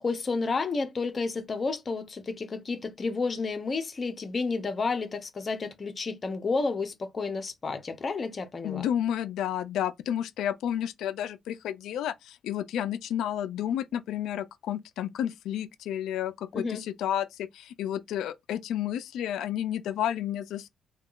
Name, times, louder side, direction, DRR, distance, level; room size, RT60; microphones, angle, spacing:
voice 1, 0.0-8.9 16.5-16.8, left 4 dB, 40° left, 0.7 m, -31 dB
voice 2, 8.6-20.7, left 10 dB, 85° left, 0.4 m, -31 dB
3.5 x 2.3 x 2.4 m
cardioid pair, 90°, 0 cm